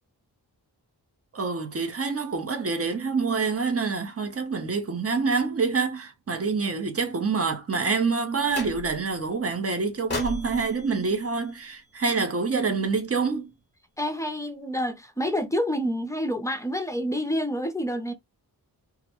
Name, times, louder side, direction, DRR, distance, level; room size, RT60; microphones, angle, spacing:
voice 1, 1.3-13.5, right 4 dB, 35° right, 0.7 m, -26 dB
sound 1, 8.5-9.1 10.1-12.3, left 3 dB, 25° left, 1.0 m, -37 dB
voice 2, 14.0-18.1, equal, 10° left, 0.5 m, -28 dB
2.4 x 2.1 x 2.9 m
wide cardioid pair, 90°, 39 cm